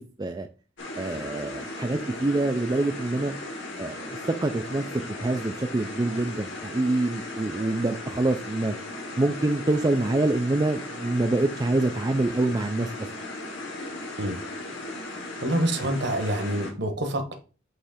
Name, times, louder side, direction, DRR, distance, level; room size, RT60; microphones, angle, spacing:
sound 1, 0.8-16.7, left 2 dB, 65° left, 1.9 m, -37 dB
voice 1, 1.0-3.3 3.8-4.9 5.2-8.7 9.2-12.9, right 2 dB, 20° right, 0.4 m, -26 dB
voice 2, 15.4-17.3, right 1 dB, 55° right, 1.2 m, -26 dB
8.1 x 3.2 x 5.0 m
head